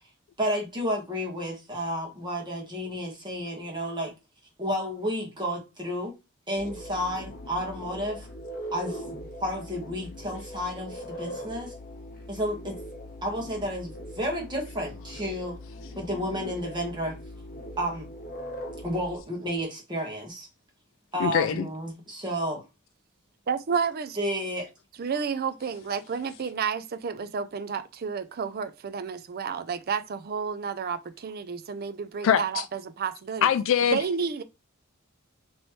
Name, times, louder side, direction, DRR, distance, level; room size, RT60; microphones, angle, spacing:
voice 1, 0.4-4.1 4.6-6.1 6.5-8.3 8.7-11.7 12.3-12.8 13.2-15.5 16.0-17.1 17.8-18.1 18.8-20.5 21.1-22.6 24.2-24.7, equal, 20° right, 1.5 m, -31 dB
sound 1, 6.6-19.2, equal, 45° left, 0.9 m, -41 dB
voice 2, 21.2-21.7 32.2-32.6 33.4-34.0, left 8 dB, 65° left, 0.3 m, -23 dB
voice 3, 23.5-24.2 25.0-33.5 33.9-34.4, right 6 dB, 45° right, 0.4 m, -31 dB
4.2 x 3.1 x 3.1 m
head